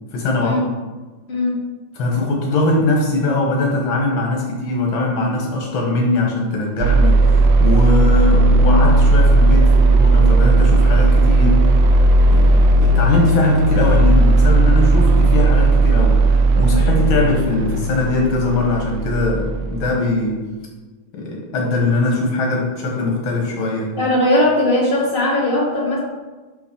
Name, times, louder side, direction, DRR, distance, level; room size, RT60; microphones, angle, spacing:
voice 1, 0.1-0.6 2.0-11.6 12.3-16.3 16.6-20.4 21.1-24.0, left 2 dB, 75° left, 0 dB, 1.9 m, -21 dB
voice 2, 1.3-1.6 24.0-26.0, left 1 dB, 25° left, -6 dB, 2.2 m, -18 dB
sound 1, 6.8-19.9, right 2 dB, 75° right, 1.2 m, -14 dB
6.4 x 5.9 x 4.4 m, 1.3 s
omnidirectional pair, 2.2 m